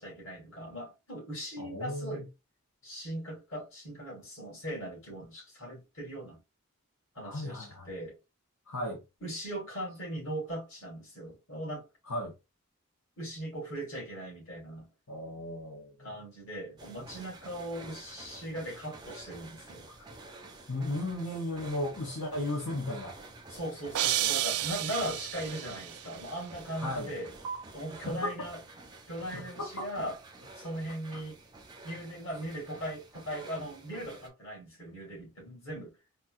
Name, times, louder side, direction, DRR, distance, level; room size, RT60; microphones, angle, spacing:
voice 1, 0.0-2.3 2.8-6.4 7.2-8.2 9.2-11.9 13.2-14.9 16.0-19.9 23.5-27.3 27.7-28.6 29.1-30.2 30.5-31.4 31.8-36.0, right 1 dB, 60° left, 2.2 m, -39 dB
voice 2, 1.6-2.3 7.2-7.9 8.7-9.0 12.1-12.3 15.1-16.2 19.9-20.0 20.7-23.2 26.8-27.1 28.1-28.4 29.3-29.9, left 1 dB, 85° left, 1.0 m, -35 dB
sound 1, 16.8-34.3, right 3 dB, 20° right, 0.5 m, -49 dB
sound 2, 23.9-26.0, right 13 dB, 85° right, 0.4 m, -31 dB
4.2 x 2.3 x 2.5 m
head